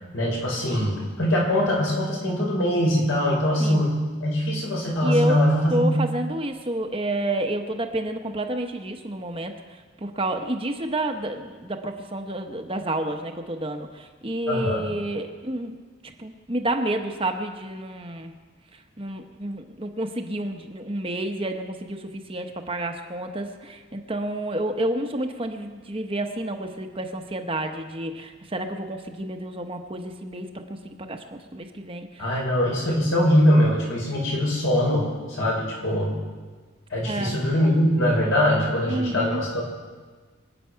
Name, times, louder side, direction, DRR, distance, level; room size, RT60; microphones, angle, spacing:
voice 1, 0.1-5.9 14.5-14.8 32.2-36.1 36.9-39.6, equal, 75° left, -3 dB, 5.3 m, -22 dB
voice 2, 5.0-5.4 5.7-9.5 10.0-15.7 16.2-18.3 19.0-32.3 37.0-37.4 38.9-39.4, right 1 dB, 25° right, 4 dB, 0.9 m, -29 dB
24.5 x 9.0 x 5.8 m, 1.4 s
head